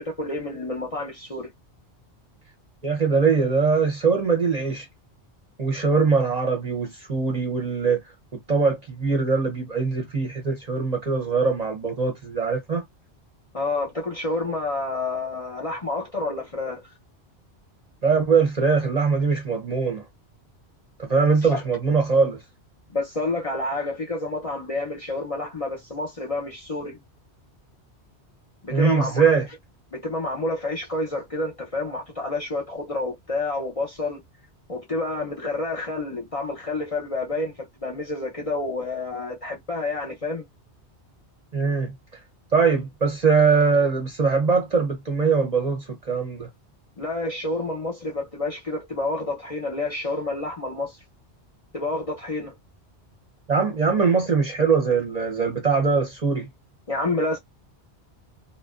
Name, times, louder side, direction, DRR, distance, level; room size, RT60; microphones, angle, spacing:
voice 1, 0.0-1.5 13.5-16.8 21.2-21.6 22.9-27.0 28.6-29.4 29.9-34.2 34.7-40.5 47.0-51.0 51.7-52.5 56.9-57.4, left 2 dB, 40° left, 0.6 m, -29 dB
voice 2, 2.8-4.9 5.6-8.0 8.3-12.8 18.0-20.0 21.0-22.4 28.7-29.5 41.5-41.9 42.5-46.5 53.5-56.5, right 5 dB, 45° right, 0.7 m, -22 dB
2.6 x 2.0 x 2.3 m
omnidirectional pair, 1.2 m